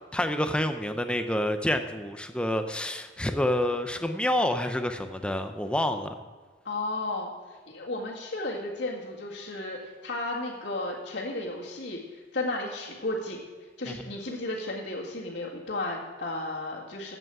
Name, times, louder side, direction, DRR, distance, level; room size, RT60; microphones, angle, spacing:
voice 1, 0.1-6.2 13.9-14.1, left 1 dB, 5° left, 7 dB, 0.6 m, -28 dB
voice 2, 6.6-13.4 13.8-17.2, left 2 dB, 65° left, -7 dB, 2.0 m, -34 dB
15.5 x 8.0 x 4.8 m, 1.4 s
head